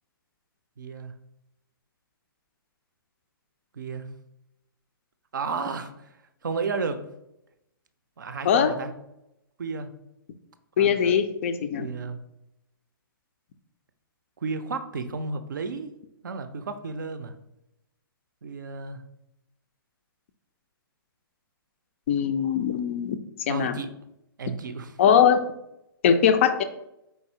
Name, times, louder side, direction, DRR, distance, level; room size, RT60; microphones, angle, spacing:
voice 1, 0.8-1.1 3.7-4.1 5.3-6.1 6.4-7.0 8.2-8.9 9.6-9.9 10.8-11.2 11.8-12.2 14.4-15.9 16.2-17.4 18.4-19.0 23.5-23.9 24.4-25.0, right 4 dB, 55° right, 9 dB, 0.5 m, -32 dB
voice 2, 10.8-11.9 22.1-23.2 23.5-23.7 25.0-25.4 26.0-26.6, left 8 dB, 35° left, 10 dB, 0.3 m, -21 dB
4.5 x 4.0 x 2.7 m, 0.86 s
figure-of-eight pair, 120°, 12 cm